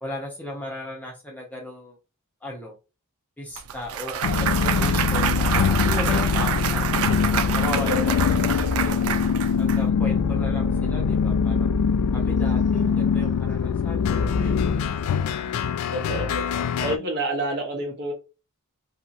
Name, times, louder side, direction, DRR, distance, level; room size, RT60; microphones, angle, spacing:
voice 1, 0.0-2.0 2.4-2.7 3.4-6.9 7.2-9.0 9.6-11.7 12.1-15.1, left 1 dB, 5° left, 0.7 m, -37 dB
Clapping / Cheering / Applause, 3.6-9.8, right 8 dB, 65° right, 0.3 m, -27 dB
sound 1, 4.2-17.0, left 6 dB, 85° left, 0.3 m, -23 dB
sound 2, 9.9-15.0, left 2 dB, 50° left, 0.6 m, -37 dB
voice 2, 15.9-16.4 16.8-18.1, right 1 dB, 50° right, 1.0 m, -28 dB
2.7 x 2.7 x 2.6 m
head